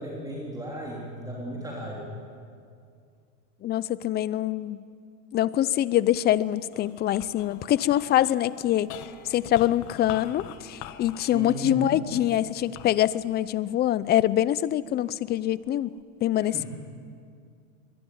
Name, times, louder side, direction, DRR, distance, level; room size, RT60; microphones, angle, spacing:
voice 1, 0.0-2.1 11.3-12.0 16.3-16.7, right 1 dB, 10° right, -2 dB, 3.3 m, -35 dB
voice 2, 3.6-4.8 5.3-8.9 9.3-15.9 16.2-16.7, left 13 dB, 25° left, 19 dB, 0.6 m, -24 dB
sound 1, 6.2-14.7 15.3-16.0, left 11 dB, 45° left, 1.4 m, -45 dB
23.5 x 20.5 x 9.4 m, 2.3 s
supercardioid pair, 135°, 41 cm